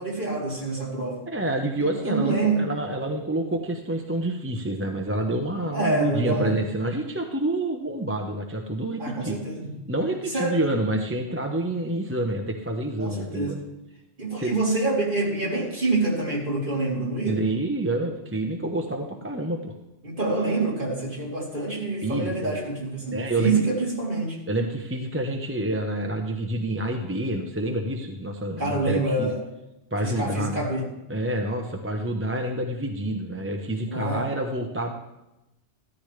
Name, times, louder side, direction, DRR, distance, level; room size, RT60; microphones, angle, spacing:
voice 1, 0.0-1.2 1.8-2.6 5.7-6.6 9.0-9.8 10.2-10.6 13.0-13.6 14.2-17.4 20.0-24.4 28.6-29.4 30.0-30.9 33.9-34.3, right 2 dB, 45° right, -5 dB, 3.5 m, -26 dB
voice 2, 1.3-9.4 9.9-13.6 14.4-14.6 17.2-19.7 22.0-22.5 23.1-23.6 24.5-29.3 29.9-30.6 31.1-34.9, right 1 dB, 10° right, 2 dB, 0.9 m, -28 dB
15.5 x 13.5 x 3.3 m, 0.94 s
omnidirectional pair, 1.2 m